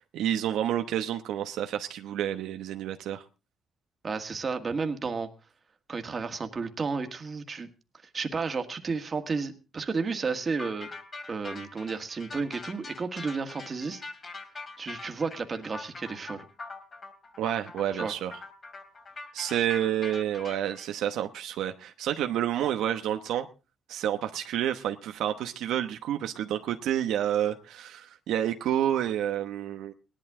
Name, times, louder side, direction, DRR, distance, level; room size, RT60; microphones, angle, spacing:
voice 1, 0.1-3.2 17.4-18.4 19.3-23.5 23.9-29.9, right 11 dB, 85° right, 7 dB, 0.9 m, -29 dB
voice 2, 4.0-5.3 5.9-7.7 8.1-10.9 11.3-14.0 14.8-16.5 17.9-18.1 19.5-19.6, right 4 dB, 35° right, 7 dB, 1.7 m, -32 dB
sound 1, 10.6-20.9, left 3 dB, 35° left, 2.7 m, -42 dB
18.0 x 11.5 x 3.7 m, 0.31 s
cardioid pair, 90°, 0 cm